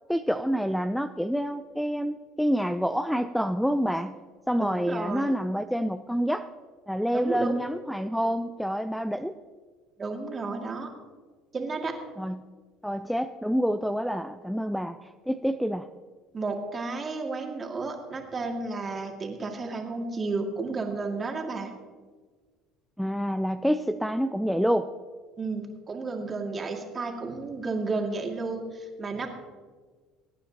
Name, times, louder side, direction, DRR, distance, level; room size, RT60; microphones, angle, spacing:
voice 1, 0.1-4.2 4.5-6.5 6.9-9.4 12.2-12.4 12.8-15.9 23.0-24.9, equal, ahead, 10 dB, 0.5 m, -27 dB
voice 2, 4.6-5.3 7.1-7.6 10.0-10.9 11.5-11.9 16.3-21.7 25.4-29.3, right 3 dB, 30° right, 2 dB, 2.4 m, -32 dB
22.0 x 9.3 x 2.9 m, 1.5 s
hypercardioid pair, 75°, 0 cm